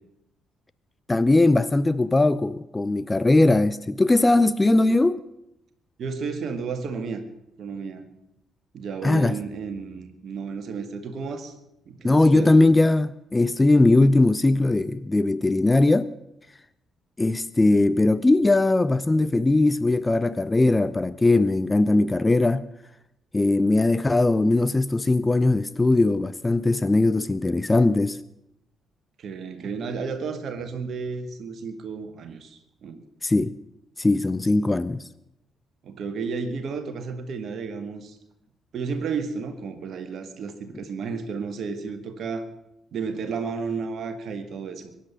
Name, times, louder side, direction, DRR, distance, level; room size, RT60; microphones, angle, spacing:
voice 1, 1.1-5.2 9.0-9.4 12.0-16.1 17.2-22.7 23.3-28.2 33.2-33.5 34.0-35.0, left 2 dB, 20° left, 0.6 m, -20 dB
voice 2, 6.0-7.2 7.6-8.1 8.7-11.5 11.9-12.6 29.2-33.0 35.8-38.2 38.7-42.5 42.9-44.9, right 5 dB, 50° right, 1.8 m, -32 dB
22.5 x 10.5 x 5.8 m
figure-of-eight pair, 45°, 0 cm